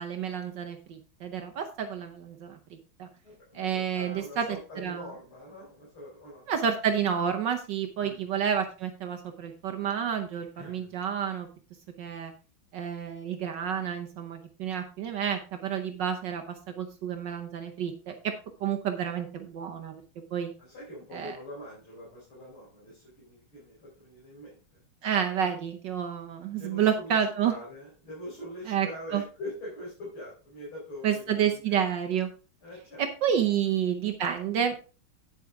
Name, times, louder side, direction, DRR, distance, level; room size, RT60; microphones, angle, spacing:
voice 1, 0.0-3.1 3.5-5.1 6.5-11.5 12.0-12.3 12.7-18.3 18.6-20.0 20.3-20.5 21.1-21.4 25.0-27.6 28.7-29.2 31.0-32.3 33.0-34.8, right 8 dB, 65° right, 5 dB, 1.3 m, -30 dB
voice 2, 3.2-6.5 8.0-8.3 10.5-10.9 20.6-24.8 26.6-27.1 27.4-31.8 32.6-33.0, left 1 dB, 80° left, -6 dB, 4.9 m, -43 dB
9.4 x 8.1 x 3.5 m, 0.36 s
omnidirectional pair, 2.3 m